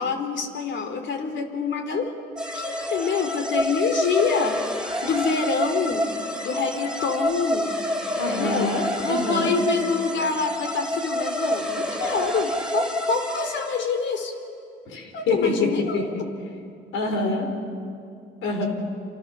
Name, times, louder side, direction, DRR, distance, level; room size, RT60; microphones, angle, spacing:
voice 1, 0.0-2.1 2.5-6.1 6.4-7.8 8.1-14.3 15.1-16.3, left 5 dB, 65° left, 7 dB, 3.4 m, -26 dB
sound 1, 2.4-14.0, equal, 5° right, 3.7 m, -28 dB
voice 2, 8.2-9.5 14.9-15.7 15.9-16.1 16.9-17.5 18.4-18.7, left 3 dB, 90° left, 4 dB, 4.5 m, -25 dB
28.5 x 28.0 x 6.8 m, 2.4 s
cardioid pair, 90°, 20 cm